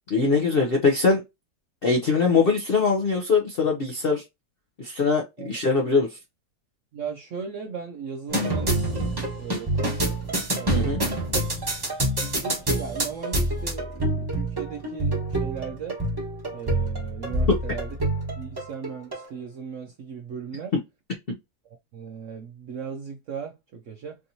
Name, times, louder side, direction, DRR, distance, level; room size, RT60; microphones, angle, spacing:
voice 1, 0.1-1.2 1.8-4.2 4.8-6.2 10.7-11.0 17.5-17.6, left 4 dB, 65° left, 0.5 m, -22 dB
voice 2, 6.9-10.2 10.6-11.2 12.2-16.0 16.5-18.0 18.4-20.7 21.9-24.2, right 6 dB, 80° right, 0.7 m, -37 dB
sound 1, 8.3-19.2, right 1 dB, 15° right, 1.0 m, -27 dB
3.5 x 2.8 x 2.6 m
omnidirectional pair, 1.9 m